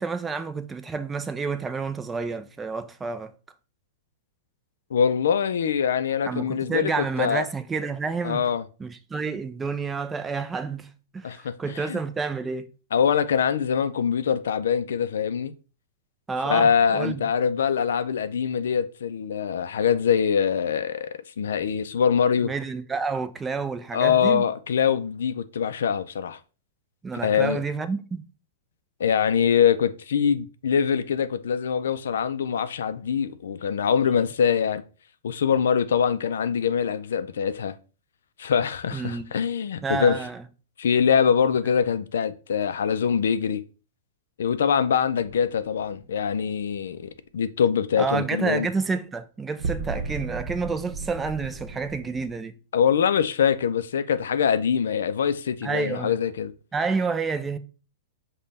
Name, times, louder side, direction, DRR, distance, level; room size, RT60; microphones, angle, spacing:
voice 1, 0.0-3.3 6.2-8.5 8.8-10.9 11.1-12.7 16.3-17.3 22.4-24.4 27.0-28.2 38.9-39.3 39.8-40.4 48.0-52.6 55.6-56.2 56.7-57.6, right 4 dB, 10° right, 0.4 m, -29 dB
voice 2, 4.9-7.5 8.2-8.6 11.2-12.0 12.9-15.5 16.5-22.5 23.9-26.4 27.2-27.6 29.0-34.8 35.2-37.7 38.4-40.2 40.8-43.6 44.4-48.7 52.7-56.5, left 7 dB, 85° left, 0.4 m, -23 dB
sound 1, 45.2-46.7 49.6-52.3, right 4 dB, 55° right, 0.6 m, -35 dB
5.2 x 2.2 x 4.0 m
hypercardioid pair, 145°, 0 cm